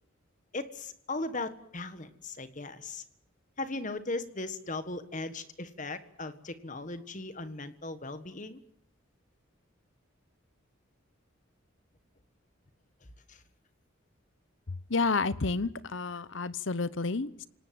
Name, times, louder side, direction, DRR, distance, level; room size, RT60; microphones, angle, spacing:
voice 1, 0.5-3.0 3.6-8.6 13.3-13.4, left 2 dB, 40° left, 11 dB, 1.6 m, -38 dB
voice 2, 14.9-17.4, left 3 dB, 65° left, 17 dB, 0.9 m, -30 dB
28.5 x 18.5 x 7.7 m, 0.69 s
head